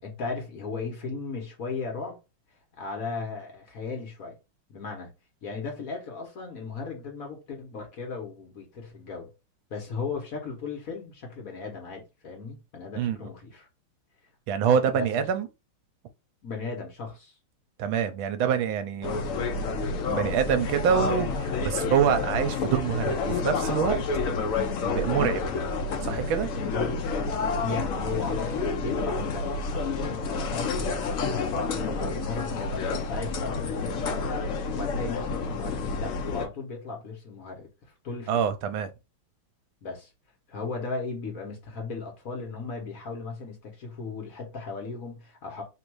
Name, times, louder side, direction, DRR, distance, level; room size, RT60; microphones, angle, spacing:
voice 1, 0.0-2.2 2.8-4.3 4.7-5.1 5.4-9.3 9.7-13.7 14.5-15.1 16.4-17.4 26.7-27.0 27.3-37.7 38.0-38.4 39.8-40.1 40.5-45.6, left 4 dB, 45° left, 1.4 m, -36 dB
voice 2, 14.5-15.5 17.8-19.2 20.1-24.0 24.8-25.6 26.0-26.5 38.3-38.9, right 8 dB, 75° right, 1.4 m, -26 dB
sound 1, 19.0-36.5, left 4 dB, 75° left, 0.7 m, -29 dB
3.5 x 2.6 x 4.6 m
omnidirectional pair, 2.3 m